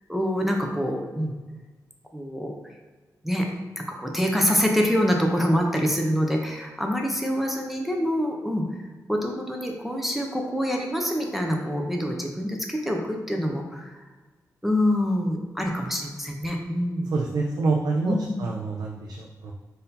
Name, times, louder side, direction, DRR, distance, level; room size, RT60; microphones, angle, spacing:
voice 1, 0.1-1.3 2.1-2.6 3.2-3.5 3.8-8.6 9.1-14.0 14.6-17.1 18.1-18.4, equal, 5° right, 0 dB, 0.5 m, -25 dB
voice 2, 17.1-19.5, right 3 dB, 75° right, -1 dB, 0.4 m, -26 dB
3.9 x 2.6 x 4.0 m, 1.3 s
wide cardioid pair, 105°, 7 cm